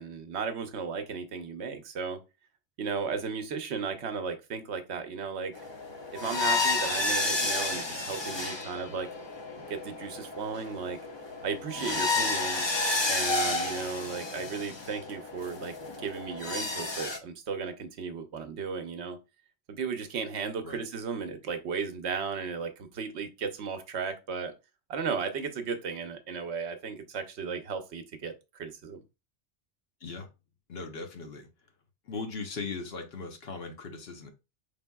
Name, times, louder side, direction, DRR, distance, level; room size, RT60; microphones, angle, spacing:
voice 1, 0.0-2.2 2.8-5.5 6.1-9.1 9.7-11.0 11.4-12.7 13.1-19.2 19.7-24.5 24.9-29.0, right 5 dB, 70° right, 1.0 m, -35 dB
sound 1, 5.5-17.2, left 3 dB, 30° left, 0.6 m, -31 dB
voice 2, 30.7-31.5 32.1-34.3, left 4 dB, 60° left, 1.0 m, -39 dB
5.1 x 3.4 x 2.2 m
omnidirectional pair, 1.2 m